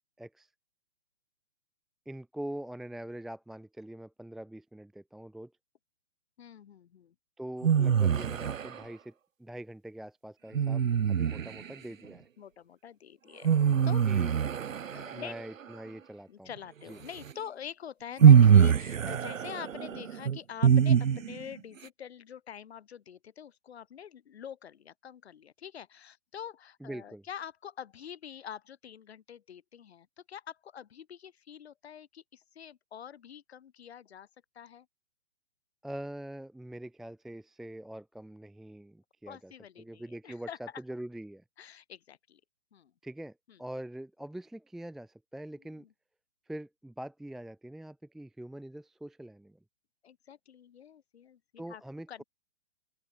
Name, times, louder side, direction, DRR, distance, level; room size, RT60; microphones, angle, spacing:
voice 1, 0.2-0.5 2.1-5.5 7.4-12.3 14.0-14.3 15.1-16.5 16.9-17.0 26.8-27.2 35.8-39.5 39.8-41.4 43.0-45.8 46.5-49.6 51.6-52.2, right 1 dB, ahead, 0.9 m, -43 dB
voice 2, 6.4-7.1 12.4-14.0 14.9-15.4 16.3-34.3 34.6-34.9 39.3-40.6 41.6-42.4 42.7-42.9 43.5-43.6 45.8-45.9 50.0-51.8 52.1-52.2, left 9 dB, 55° left, 5.7 m, -45 dB
sound 1, 7.6-8.8 10.5-11.7 13.4-15.4 17.3-17.4 18.2-21.5, right 8 dB, 80° right, 1.5 m, -23 dB
open air
hypercardioid pair, 165°, 38 cm